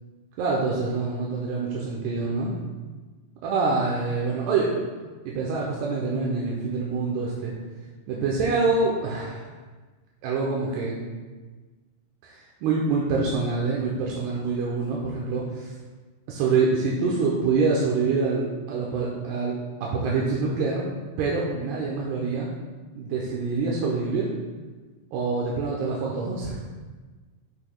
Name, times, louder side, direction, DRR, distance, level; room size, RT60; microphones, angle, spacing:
voice 1, 0.4-2.6 3.4-4.8 5.3-7.5 8.1-9.5 10.2-11.0 12.2-15.7 16.3-18.4 18.7-19.5 19.8-20.8 21.2-22.5 23.0-24.3 25.1-26.6, right 4 dB, 80° right, -3 dB, 2.5 m, -26 dB
11.0 x 5.9 x 2.3 m, 1.3 s
omnidirectional pair, 5.4 m